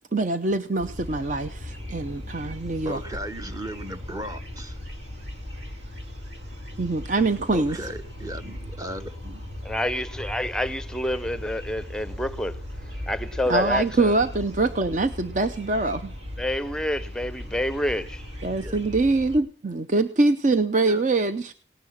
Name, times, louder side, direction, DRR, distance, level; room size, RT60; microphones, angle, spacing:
voice 1, 0.1-3.0 6.8-7.8 13.5-16.1 18.4-21.5, right 3 dB, 40° right, 0.6 m, -24 dB
sound 1, 0.8-19.4, left 1 dB, 70° right, 2.3 m, -38 dB
voice 2, 2.8-4.8 7.5-9.5 18.5-18.8 20.9-21.0, equal, 20° right, 1.2 m, -36 dB
voice 3, 9.6-14.1 16.4-18.2, left 1 dB, 5° left, 0.7 m, -28 dB
18.5 x 10.5 x 5.8 m
head